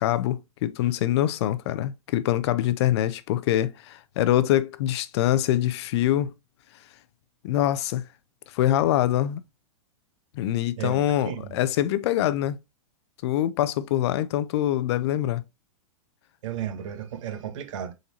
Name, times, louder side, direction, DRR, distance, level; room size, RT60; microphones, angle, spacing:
voice 1, 0.0-6.3 7.4-8.0 8.5-9.4 10.4-12.6 13.2-15.4, left 12 dB, 50° left, 0.4 m, -24 dB
voice 2, 10.8-11.6 16.4-17.9, right 9 dB, 65° right, 0.8 m, -34 dB
4.0 x 3.9 x 2.8 m
hypercardioid pair, 145°, 17 cm